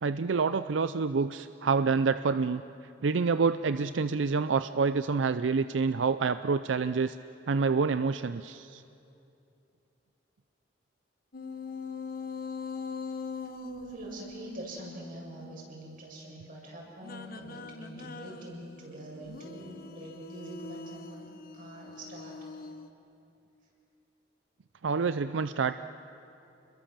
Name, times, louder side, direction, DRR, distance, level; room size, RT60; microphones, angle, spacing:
voice 1, 0.0-2.6 3.0-7.2 7.5-8.8 24.8-25.7, right 5 dB, 85° right, 12 dB, 0.5 m, -27 dB
sound 1, 11.3-15.8 17.0-22.9, left 4 dB, 50° left, 1.2 m, -42 dB
voice 2, 13.6-21.2 21.5-22.4, right 1 dB, 50° right, -2 dB, 7.5 m, -44 dB
29.0 x 22.0 x 7.5 m, 2.7 s
head